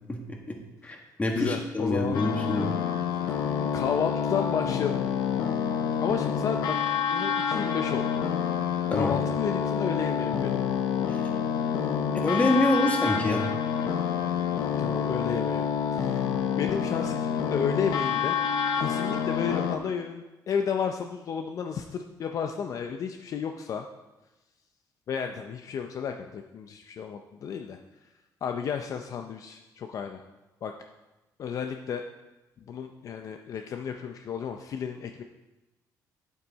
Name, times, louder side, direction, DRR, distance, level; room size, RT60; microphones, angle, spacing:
voice 1, 0.1-2.7 8.9-9.1 11.1-11.3 12.2-13.4, left 1 dB, 20° left, 2 dB, 1.6 m, -27 dB
voice 2, 1.3-2.5 3.7-5.1 6.0-6.8 7.1-8.2 8.9-10.6 14.8-15.7 15.9-18.4 18.7-23.9 25.1-27.8 28.4-30.2 30.6-30.7 31.4-32.0 32.7-35.2, left 7 dB, 55° left, 5 dB, 0.6 m, -32 dB
sound 1, 2.1-19.8, left 7 dB, 80° left, 0.8 m, -28 dB
8.9 x 8.2 x 4.1 m, 1.0 s
cardioid pair, 115°, 7 cm